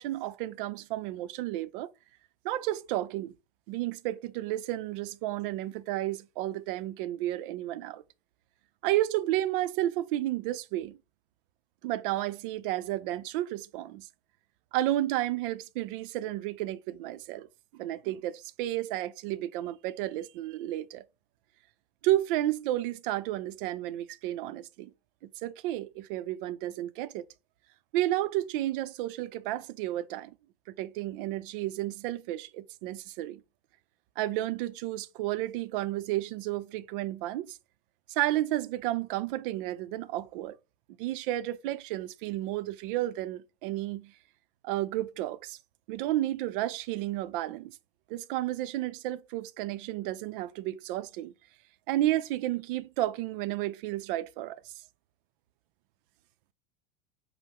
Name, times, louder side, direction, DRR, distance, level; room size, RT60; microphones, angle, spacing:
voice 1, 0.0-1.9 2.4-3.3 3.7-8.0 8.8-11.0 11.8-14.1 14.7-17.5 17.7-21.0 22.0-24.9 25.4-27.3 27.9-30.3 30.7-33.4 34.2-37.6 38.1-40.6 41.0-44.1 44.6-45.6 45.9-47.8 48.1-51.3 51.9-54.6, right 14 dB, 60° right, 0.5 m, -32 dB
5.4 x 2.1 x 3.5 m
hypercardioid pair, 110°, 29 cm